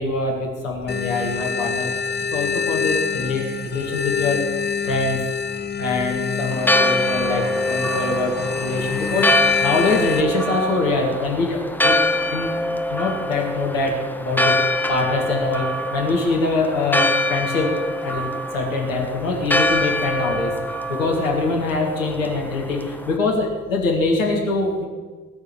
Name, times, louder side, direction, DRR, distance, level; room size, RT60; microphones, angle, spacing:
voice 1, 0.0-1.9 2.3-4.4 4.8-5.2 5.8-9.3 9.6-12.0 12.3-12.5 12.9-17.7 18.0-20.5 20.9-24.9, left 3 dB, 80° left, 0 dB, 2.1 m, -23 dB
sound 1, 0.9-10.2, left 5 dB, 25° left, 1.5 m, -26 dB
Church bell, 6.5-23.2, left 1 dB, 5° left, 0.9 m, -24 dB
18.0 x 6.7 x 8.0 m, 1.4 s
figure-of-eight pair, 45°, 39 cm